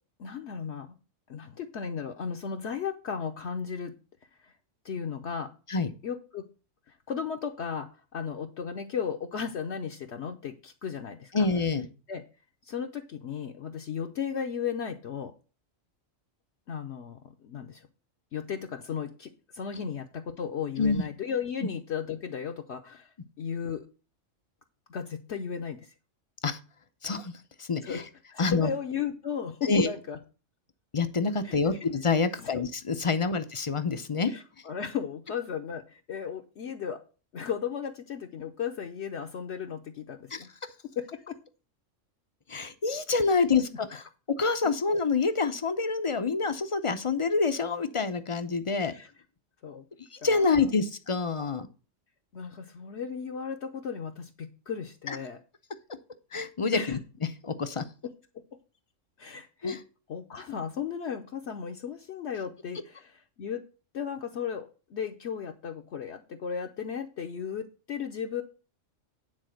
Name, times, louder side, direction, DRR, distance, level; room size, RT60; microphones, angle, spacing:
voice 1, 0.2-1.0 1.3-3.9 4.4-4.5 4.8-5.5 6.0-6.5 6.9-11.5 12.1-12.2 12.6-15.3 16.7-17.9 18.3-23.8 24.9-25.9 27.8-28.0 28.3-30.2 31.4-31.8 32.4-32.6 34.3-37.0 37.3-40.5 41.0-41.4 43.4-43.5 48.8-49.1 49.6-49.9 50.2-50.6 52.3-55.4 56.7-57.0 58.0-58.1 59.2-59.8 60.1-63.6 63.9-68.4, left 7 dB, 60° left, 4 dB, 1.0 m, -35 dB
voice 2, 11.3-11.9 20.8-21.0 26.4-26.6 27.0-27.3 27.6-28.0 28.4-28.7 29.6-29.9 30.9-34.3 40.3-40.4 42.5-44.0 44.4-48.9 50.1-51.7 55.1-55.2 56.3-57.0 57.4-57.8 59.6-59.8, left 4 dB, 35° left, 10 dB, 0.5 m, -27 dB
9.8 x 4.2 x 6.3 m, 0.35 s
omnidirectional pair, 1.3 m